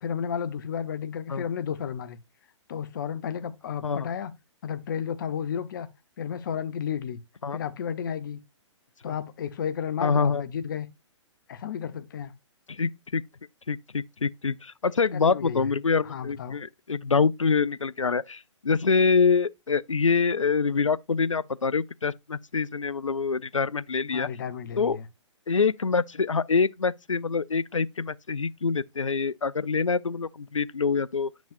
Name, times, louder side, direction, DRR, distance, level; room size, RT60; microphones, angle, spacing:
voice 1, 0.0-2.2 2.7-4.3 4.6-5.9 6.2-7.2 7.5-8.4 9.0-10.9 11.5-12.3 15.1-15.7 16.0-16.6 24.1-25.0, left 8 dB, 40° left, 0.8 m, -32 dB
voice 2, 10.0-10.4 12.7-13.2 13.7-24.3 24.8-25.0 25.5-31.3, left 5 dB, 85° left, 0.4 m, -25 dB
8.4 x 6.2 x 2.5 m
figure-of-eight pair, 125°, 16 cm